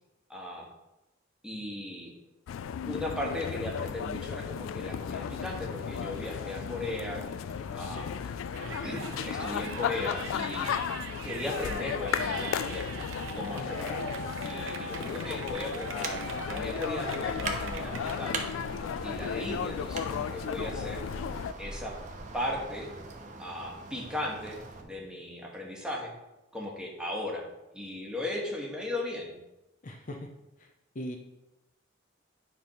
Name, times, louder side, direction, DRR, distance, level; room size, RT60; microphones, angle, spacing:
voice 1, 0.3-0.7 1.4-2.1 2.9-7.2 7.7-8.1 8.8-10.8 11.2-13.0 13.3-18.5 19.0-21.0 21.6-22.0 22.3-22.9 23.4-26.1 26.5-27.4 27.7-29.3, left 1 dB, 5° right, -2 dB, 1.5 m, -37 dB
sound 1, 2.5-21.5, left 8 dB, 80° left, 0.3 m, -35 dB
sound 2, 4.8-24.8, right 2 dB, 40° right, 1.0 m, -44 dB
Yell, 8.5-18.2, right 4 dB, 75° right, 0.9 m, -41 dB
voice 2, 29.8-30.3 30.6-30.7 30.9-31.2, equal, 40° left, 3 dB, 0.6 m, -39 dB
9.5 x 3.4 x 5.6 m, 0.97 s
head